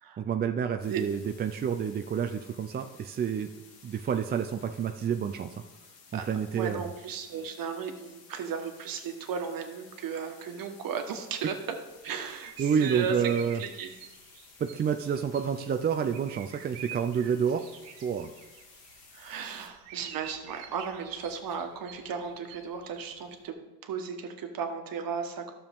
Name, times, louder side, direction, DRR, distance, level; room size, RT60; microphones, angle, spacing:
voice 1, 0.2-3.5 3.8-5.5 6.1-6.8 12.6-13.6 14.6-17.7 18.0-18.3, right 7 dB, 25° right, 6 dB, 0.4 m, -29 dB
sound 1, 0.8-19.7, left 5 dB, 60° left, 2.1 m, -55 dB
voice 2, 6.6-11.6 12.0-13.2 13.6-13.9 19.1-23.5 23.8-25.5, right 6 dB, 50° right, 5 dB, 1.4 m, -35 dB
sound 2, 11.9-23.5, right 9 dB, 75° right, 1.0 m, -49 dB
12.0 x 7.0 x 3.6 m, 1.1 s
supercardioid pair, 90°, 44 cm